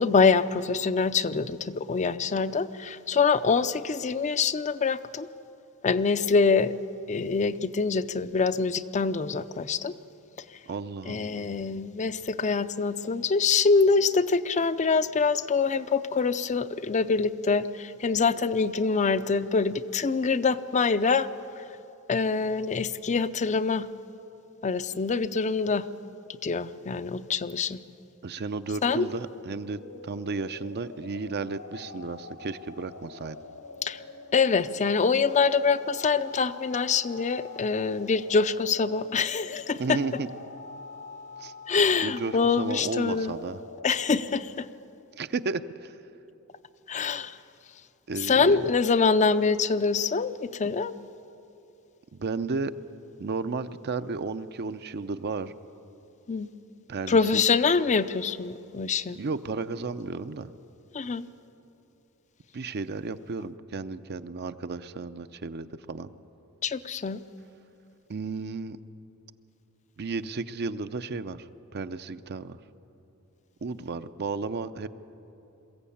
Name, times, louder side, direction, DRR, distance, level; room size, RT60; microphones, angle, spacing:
voice 1, 0.0-5.3 5.8-6.7 7.1-10.0 11.1-21.3 22.1-23.9 24.6-25.9 26.4-27.8 28.8-29.1 33.8-34.0 34.3-40.0 41.7-43.3 43.8-44.7 46.9-47.4 48.2-50.9 56.3-56.5 57.1-59.2 60.9-61.3 66.6-67.2, left 4 dB, 35° left, 13 dB, 0.5 m, -25 dB
voice 2, 10.7-11.7 28.2-33.4 39.8-40.3 41.4-41.5 42.0-43.6 45.2-45.9 48.1-48.7 52.1-52.7 53.2-55.5 56.9-57.4 59.1-60.5 62.5-66.1 68.1-68.8 70.0-71.5 71.7-72.6 73.6-74.9, right 4 dB, 50° right, 12 dB, 0.6 m, -33 dB
sound 1, 29.3-44.5, left 3 dB, 80° left, 1.7 m, -45 dB
22.0 x 15.0 x 8.5 m, 2.9 s
head